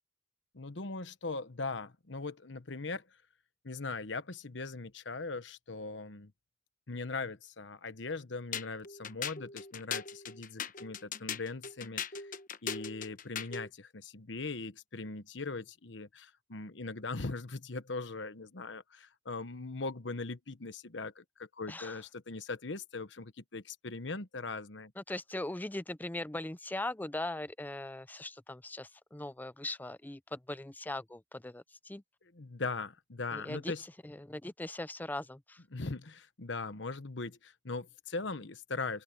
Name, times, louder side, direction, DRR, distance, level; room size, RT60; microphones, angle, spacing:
voice 1, 0.5-3.0 3.6-6.3 6.9-12.3 12.6-24.9 32.3-33.8 35.7-39.0, left 3 dB, 70° left, 1.2 m, -40 dB
sound 1, 8.5-13.7, left 7 dB, 45° left, 1.0 m, -39 dB
voice 2, 21.7-22.0 25.0-32.0 33.3-33.7 34.0-35.6, left 2 dB, 10° left, 0.5 m, -40 dB
open air
head